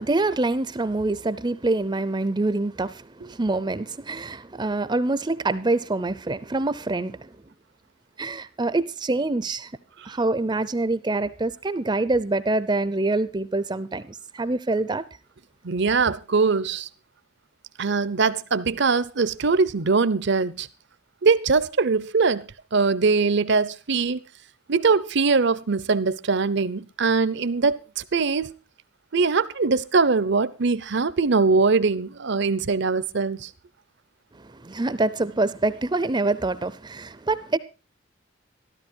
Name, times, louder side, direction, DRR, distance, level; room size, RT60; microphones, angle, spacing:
voice 1, 0.0-7.4 8.2-9.7 10.1-15.0 34.3-37.6, right 2 dB, 25° right, 0.6 m, -25 dB
voice 2, 15.6-16.9 17.8-20.7 21.2-24.2 24.7-28.5 29.1-33.5, right 4 dB, 60° right, 0.8 m, -22 dB
13.5 x 13.0 x 4.5 m
head